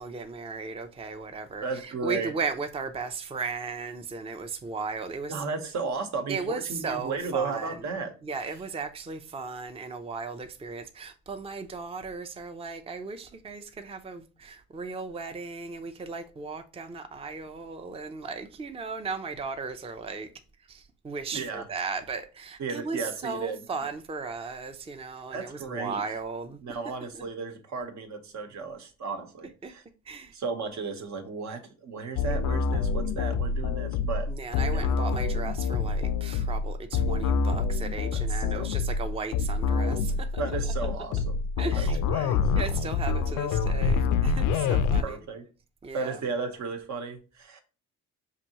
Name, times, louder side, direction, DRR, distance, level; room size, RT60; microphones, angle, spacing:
voice 1, 0.0-5.5 6.3-7.9 8.2-20.3 20.7-26.8 27.1-27.3 29.6-29.7 30.1-30.3 34.3-40.4 41.6-45.2 45.8-46.2, right 4 dB, 20° right, 0.5 m, -36 dB
voice 2, 1.6-2.3 5.3-8.1 21.3-21.7 22.6-23.6 25.3-26.0 26.6-29.8 30.3-34.3 34.7-34.9 38.5-38.7 40.4-41.3 41.8-42.4 44.7-45.4 45.9-47.6, right 4 dB, 65° right, 1.1 m, -34 dB
sound 1, 32.2-45.0, left 5 dB, 75° left, 0.5 m, -26 dB
5.8 x 2.7 x 2.9 m
cardioid pair, 90°, 31 cm